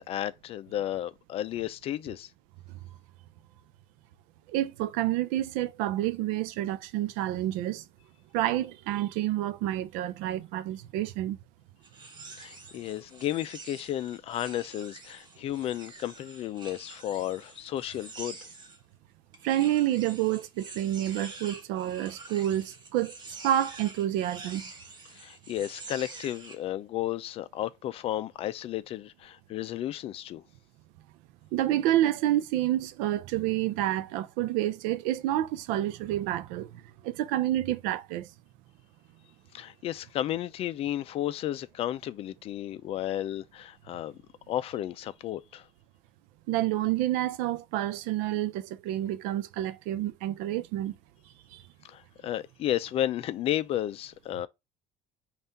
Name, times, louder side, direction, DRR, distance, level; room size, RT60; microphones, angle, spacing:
voice 1, 0.0-2.3 12.4-18.4 25.1-30.4 39.5-44.2 44.5-45.7 51.8-54.5, left 12 dB, 45° left, 0.4 m, -33 dB
voice 2, 4.5-7.8 8.3-11.4 19.4-24.7 31.5-36.7 37.0-38.3 46.5-50.9 51.5-51.6, right 13 dB, 85° right, 0.5 m, -29 dB
sound 1, 11.8-18.8 19.3-26.6, right 3 dB, 35° right, 1.3 m, -47 dB
5.5 x 2.4 x 2.6 m
cardioid pair, 140°, 14 cm